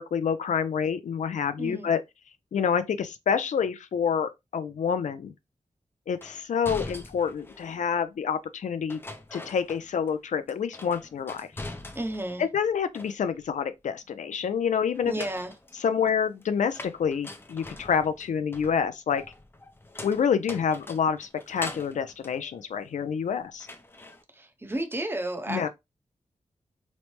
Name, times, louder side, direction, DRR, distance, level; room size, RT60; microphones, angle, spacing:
voice 1, 0.0-2.0 2.5-5.3 6.1-9.0 9.3-11.5 12.4-15.1 15.8-19.2 20.0-23.7 25.5-25.7, left 7 dB, 80° left, 0.4 m, -27 dB
voice 2, 1.6-2.0 11.9-12.4 15.0-15.6 24.3-25.7, right 1 dB, 20° right, 0.7 m, -32 dB
sound 1, 6.2-7.8 8.9-10.2 10.5-12.4 12.7-13.5 14.9-23.2 23.6-24.2, left 2 dB, 20° left, 0.4 m, -43 dB
3.1 x 2.1 x 2.9 m
wide cardioid pair, 85°, 12 cm